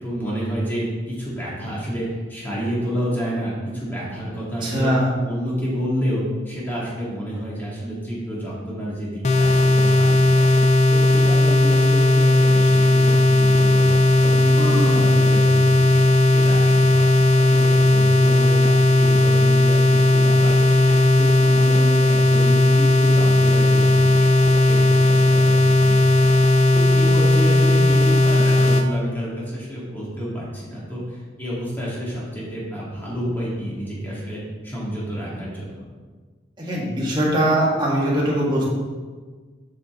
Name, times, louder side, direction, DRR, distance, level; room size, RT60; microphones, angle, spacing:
voice 1, 0.0-4.9 5.2-10.5 10.9-13.9 14.2-16.0 16.3-24.0 24.5-26.4 26.7-35.9, equal, 10° left, -7 dB, 2.3 m, -29 dB
voice 2, 4.6-5.1 14.6-15.2 36.6-38.7, right 1 dB, 25° right, -5 dB, 1.9 m, -21 dB
sound 1, 9.2-28.9, left 2 dB, 40° left, 0.5 m, -16 dB
8.0 x 5.9 x 3.8 m, 1.4 s
head